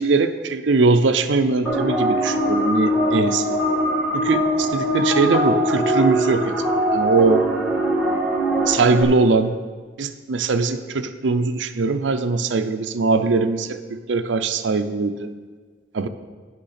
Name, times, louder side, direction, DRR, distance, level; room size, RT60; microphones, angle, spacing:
voice 1, 0.0-3.5 4.1-6.5 6.9-7.5 8.1-8.2 8.7-9.6 10.0-15.3 15.9-16.1, right 3 dB, 80° right, 8 dB, 0.5 m, -21 dB
sound 1, 1.7-9.0, equal, 5° left, 1.9 m, -21 dB
10.5 x 6.5 x 5.8 m, 1.5 s
head